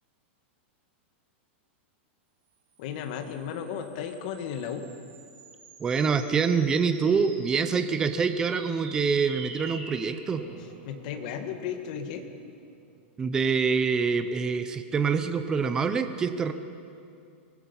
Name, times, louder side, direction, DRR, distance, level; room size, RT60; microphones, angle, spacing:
voice 1, 2.8-4.8 10.8-12.3, left 8 dB, 40° left, 5 dB, 1.8 m, -34 dB
sound 1, 2.8-13.5, right 4 dB, 30° right, 2.8 m, -48 dB
voice 2, 5.8-10.4 13.2-16.5, right 5 dB, 10° right, 10 dB, 0.6 m, -25 dB
24.5 x 19.0 x 5.5 m, 2.4 s
supercardioid pair, 180°, 7 cm